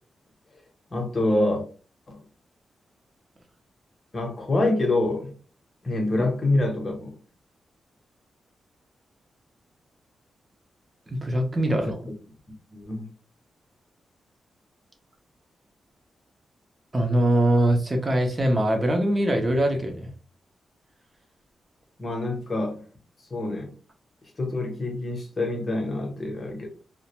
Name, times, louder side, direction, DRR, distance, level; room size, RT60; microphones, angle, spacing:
voice 1, 0.9-1.6 2.1-2.2 4.1-5.3 5.8-7.1 11.8-11.9 12.7-13.1 22.0-22.8 23.3-23.7 24.4-26.7, left 2 dB, 35° left, 0.8 m, -26 dB
voice 2, 11.1-12.0 16.9-20.1, right 1 dB, 25° right, 0.6 m, -22 dB
2.3 x 2.1 x 2.9 m
wide cardioid pair, 120°, 0 cm